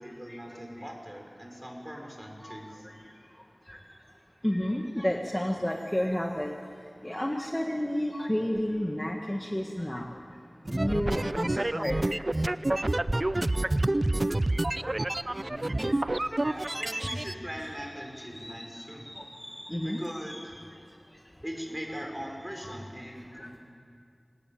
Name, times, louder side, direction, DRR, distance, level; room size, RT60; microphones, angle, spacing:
voice 1, 0.0-2.9 15.4-15.8 16.4-19.1 19.8-20.6 21.4-23.6, equal, 15° right, 1 dB, 5.8 m, -40 dB
voice 2, 4.4-6.5 7.0-10.1 10.7-12.0 13.5-13.6 16.4-17.7 18.1-20.4 22.6-22.8 23.3-23.6, equal, 15° left, 2 dB, 1.7 m, -32 dB
sound 1, 10.7-17.3, right 1 dB, 45° right, 0.6 m, -28 dB
26.5 x 18.5 x 8.8 m, 2.3 s
wide cardioid pair, 40°, 0 cm